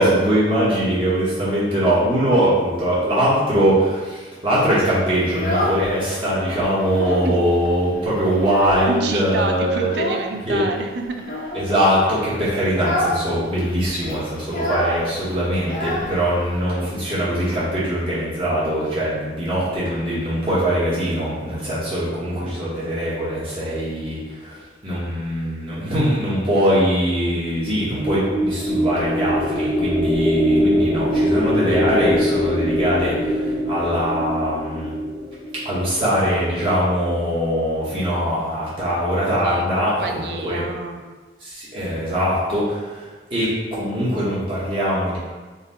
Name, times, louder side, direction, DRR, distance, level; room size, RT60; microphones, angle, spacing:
voice 1, 0.0-9.9 10.5-10.6 11.5-34.9 35.6-40.6 41.4-45.2, equal, 30° right, -9 dB, 0.9 m, -22 dB
Child speech kid speaking, 5.2-6.2 6.6-7.4 7.6-7.7 8.1-9.2 9.8-10.3 11.2-11.7 12.1-12.3 12.7-13.2 13.5-13.6 13.8-16.6, left 1 dB, 45° left, 0.5 m, -27 dB
voice 2, 8.9-11.4 39.4-41.0, right 3 dB, 70° right, 4 dB, 0.4 m, -28 dB
sound 1, 27.8-36.1, equal, 5° right, 0.6 m, -22 dB
3.8 x 2.0 x 4.0 m, 1.3 s
head